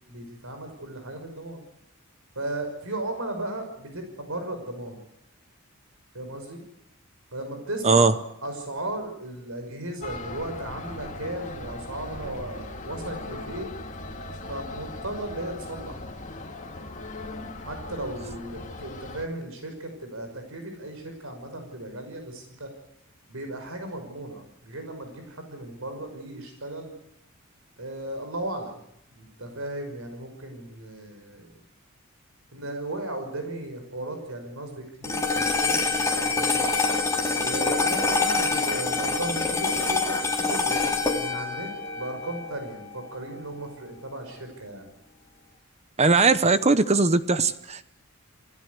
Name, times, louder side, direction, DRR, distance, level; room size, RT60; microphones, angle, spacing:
voice 1, 0.0-1.6 2.4-5.0 6.1-6.6 7.3-8.1 8.4-13.7 14.5-16.1 17.6-22.7 23.3-26.9 27.8-28.8 29.1-31.5 32.5-36.6 37.4-44.9, right 1 dB, 70° right, 6 dB, 5.7 m, -36 dB
sound 1, 10.0-19.3, left 2 dB, 35° left, 2.3 m, -39 dB
sound 2, 35.0-43.6, left 3 dB, 15° left, 3.8 m, -26 dB
voice 2, 46.0-47.8, right 3 dB, 30° right, 13 dB, 0.9 m, -20 dB
27.5 x 16.5 x 8.2 m, 0.77 s
head